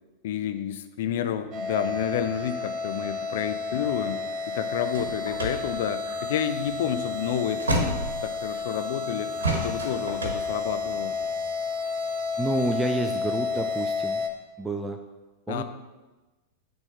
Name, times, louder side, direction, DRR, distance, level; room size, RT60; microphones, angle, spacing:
voice 1, 0.2-9.3 9.6-11.2 15.5-15.6, left 9 dB, 55° left, 10 dB, 0.4 m, -30 dB
sound 1, 1.5-14.3, left 4 dB, 35° right, 0.9 m, -31 dB
sound 2, 4.9-8.8 9.4-11.4, right 2 dB, 70° right, 1.2 m, -31 dB
sound 3, 6.0-6.5 9.4-9.8, right 2 dB, 55° right, 1.5 m, -46 dB
voice 2, 12.4-14.2 14.6-15.0 15.5-15.6, right 2 dB, 10° right, 5 dB, 0.5 m, -29 dB
9.0 x 3.5 x 5.5 m, 1.2 s
figure-of-eight pair, 90°, 0 cm